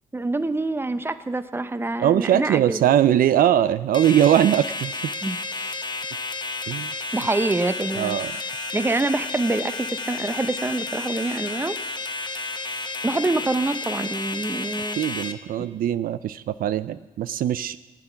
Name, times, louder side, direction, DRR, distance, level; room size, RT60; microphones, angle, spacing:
voice 1, 0.1-2.8 5.2-5.9 7.1-8.4 8.7-11.8 13.0-15.0, right 2 dB, 15° right, 11 dB, 0.7 m, -26 dB
voice 2, 2.0-5.1 6.7-6.9 8.0-8.3 15.0-17.8, right 11 dB, 75° right, 14 dB, 0.4 m, -21 dB
sound 1, 3.9-15.3, left 3 dB, 30° left, 0.9 m, -31 dB
15.5 x 9.0 x 5.7 m, 1.2 s
cardioid pair, 75°, 15 cm